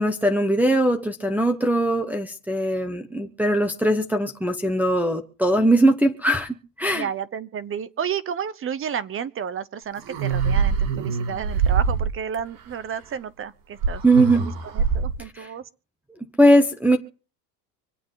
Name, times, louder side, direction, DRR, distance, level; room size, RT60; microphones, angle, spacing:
voice 1, 0.0-7.1 14.0-14.5 15.2-15.5 16.4-17.0, right 1 dB, 5° right, 1.1 m, -20 dB
voice 2, 6.9-15.6, right 8 dB, 25° right, 0.8 m, -32 dB
sound 1, 9.9-12.4 13.8-15.2, right 6 dB, 60° right, 3.6 m, -24 dB
25.5 x 8.5 x 4.0 m
supercardioid pair, 120°, 47 cm